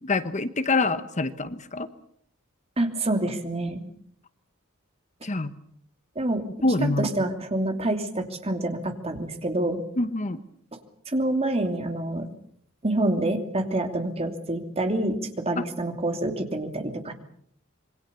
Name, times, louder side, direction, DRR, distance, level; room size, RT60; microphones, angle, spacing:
voice 1, 0.0-1.9 5.2-5.5 6.6-7.1 10.0-10.4 15.6-15.7, left 2 dB, 35° left, 12 dB, 1.1 m, -25 dB
voice 2, 2.8-3.8 6.2-6.5 6.8-9.8 10.7-10.8 11.1-12.3 12.8-17.1, right 1 dB, 30° right, 6 dB, 2.9 m, -27 dB
26.5 x 23.0 x 6.9 m, 0.64 s
head